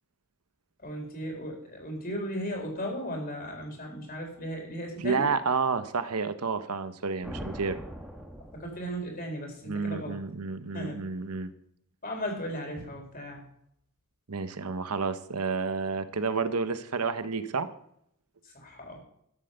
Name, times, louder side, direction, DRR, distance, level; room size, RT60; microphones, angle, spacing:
voice 1, 0.8-5.2 8.6-10.2 10.7-11.0 12.0-13.5 18.4-19.0, equal, 40° left, 2 dB, 4.2 m, -36 dB
voice 2, 5.0-7.8 9.7-11.5 14.3-17.7, right 4 dB, 85° right, 11 dB, 1.0 m, -30 dB
sound 1, 7.2-9.3, equal, ahead, 1.5 m, -42 dB
12.5 x 7.8 x 6.7 m, 0.71 s
head